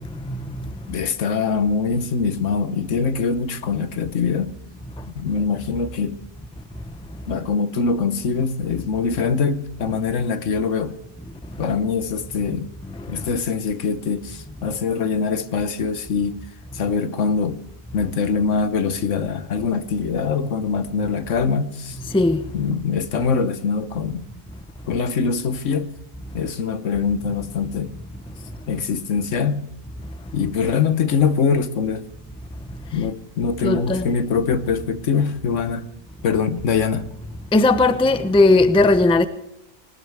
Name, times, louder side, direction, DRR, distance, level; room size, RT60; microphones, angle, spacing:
voice 1, 0.3-0.6 22.1-22.4 33.6-34.1 37.5-39.3, left 2 dB, 5° left, 0.5 m, -17 dB
voice 2, 0.9-4.5 5.1-6.2 7.3-11.0 11.6-12.7 13.1-16.4 16.7-17.6 17.9-22.0 22.5-24.3 24.9-25.9 26.3-27.9 28.7-29.7 30.3-32.1 32.9-35.9 36.2-37.1, left 5 dB, 70° left, 1.3 m, -23 dB
20.0 x 19.0 x 3.5 m
omnidirectional pair, 1.4 m